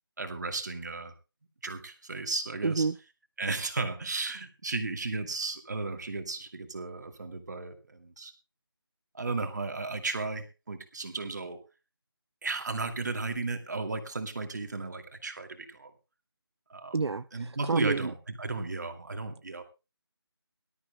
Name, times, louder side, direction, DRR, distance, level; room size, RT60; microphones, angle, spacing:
voice 1, 0.2-1.1 1.6-2.8 3.4-8.3 9.1-11.6 12.4-15.9 16.7-16.9 17.3-19.6, right 3 dB, 45° right, 2.4 m, -34 dB
voice 2, 2.6-3.0 16.9-18.1, right 4 dB, 85° right, 0.6 m, -29 dB
23.5 x 12.5 x 2.2 m
figure-of-eight pair, 175°, 13 cm